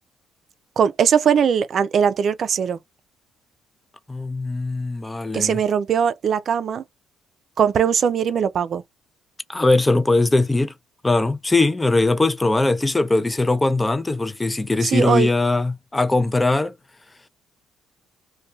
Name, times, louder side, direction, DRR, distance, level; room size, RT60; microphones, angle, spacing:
voice 1, 0.8-2.8 5.3-6.8 7.6-8.8 14.8-15.3, right 7 dB, 55° right, 0.4 m, -20 dB
voice 2, 4.1-5.6 9.5-10.7 11.0-16.7, left 2 dB, 15° left, 0.5 m, -20 dB
2.6 x 2.2 x 3.0 m
cardioid pair, 80°, 0 cm